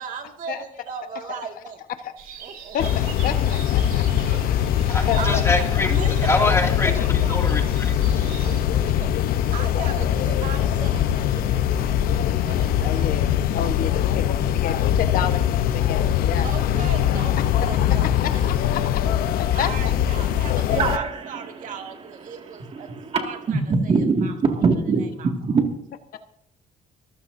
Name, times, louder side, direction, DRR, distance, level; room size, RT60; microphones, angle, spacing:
voice 1, 0.0-1.8 2.4-2.8 4.3-6.5 7.2-7.4 8.4-8.6 8.9-9.0 9.2-13.7 16.4-19.1 19.5-22.9 23.2-23.9 24.2-24.6 25.2-25.3, right 6 dB, 60° right, 2.1 m, -37 dB
sound 1, 2.2-8.6, right 7 dB, 85° right, 4.0 m, -43 dB
voice 2, 2.7-5.4 12.8-15.4 15.7-16.7 17.9-19.3 19.6-20.0 26.1-26.2, left 8 dB, 75° left, 1.3 m, -31 dB
sound 2, 2.8-21.0, left 10 dB, 90° left, 0.8 m, -22 dB
voice 3, 4.9-8.2, left 2 dB, 20° left, 2.4 m, -25 dB
voice 4, 20.7-25.6, right 4 dB, 40° right, 2.2 m, -24 dB
25.0 x 15.5 x 2.7 m
cardioid pair, 140°, 15 cm